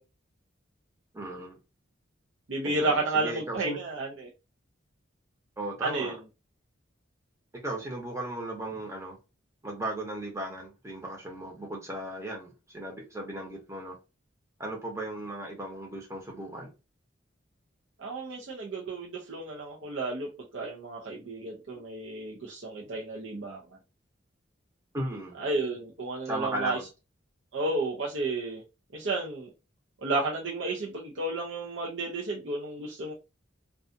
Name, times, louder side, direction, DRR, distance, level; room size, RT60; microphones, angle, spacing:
voice 1, 1.1-1.6 2.6-3.8 5.6-6.2 7.6-9.2 9.6-14.0 14.6-16.7 21.7-21.8 24.9-25.4 26.3-26.8, right 1 dB, 15° right, 0.7 m, -36 dB
voice 2, 2.5-4.3 5.8-6.2 18.0-23.6 25.4-26.8 27.5-28.6 28.9-29.5 30.0-33.1, right 2 dB, 75° right, 0.6 m, -32 dB
2.4 x 2.3 x 2.6 m
head